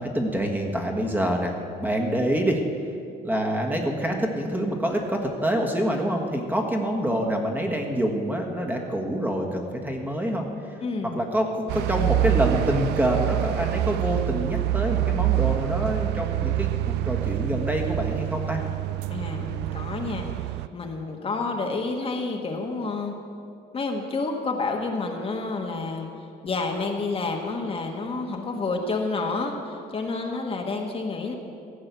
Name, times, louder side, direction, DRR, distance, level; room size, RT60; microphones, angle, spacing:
voice 1, 0.0-2.6 3.2-10.7 11.1-18.6, equal, 10° right, 1 dB, 1.5 m, -26 dB
voice 2, 10.8-11.2 19.1-20.5 20.7-23.1 23.7-26.1 26.4-31.3, left 3 dB, 35° left, 2 dB, 1.3 m, -29 dB
sound 1, 11.7-20.7, right 15 dB, 85° right, 0.4 m, -26 dB
15.0 x 5.4 x 8.3 m, 2.4 s
cardioid pair, 110°, 17 cm